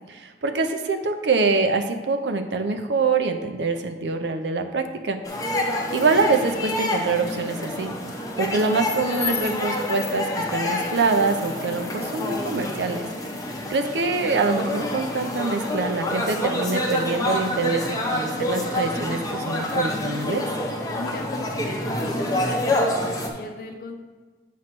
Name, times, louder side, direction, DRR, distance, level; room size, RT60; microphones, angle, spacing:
voice 1, 0.1-5.2 5.7-7.9 8.4-13.1 13.7-20.5, right 4 dB, 70° right, 6 dB, 0.6 m, -25 dB
sound 1, 5.2-23.3, left 1 dB, 20° left, 0.8 m, -27 dB
voice 2, 20.9-23.9, left 1 dB, 50° left, 4 dB, 0.7 m, -37 dB
7.4 x 3.1 x 6.0 m, 1.3 s
head